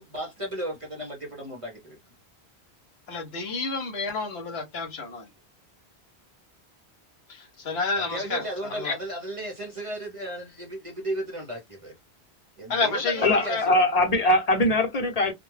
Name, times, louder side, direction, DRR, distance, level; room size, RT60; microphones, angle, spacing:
voice 1, 0.0-2.0 7.9-11.9 12.6-13.8, right 1 dB, 40° right, 0.6 m, -35 dB
voice 2, 3.1-5.3 7.3-8.4 8.7-8.9 12.7-13.6, left 4 dB, 75° left, 1.0 m, -29 dB
voice 3, 13.2-15.3, left 1 dB, 40° left, 0.8 m, -21 dB
2.2 x 2.1 x 3.1 m
omnidirectional pair, 1.1 m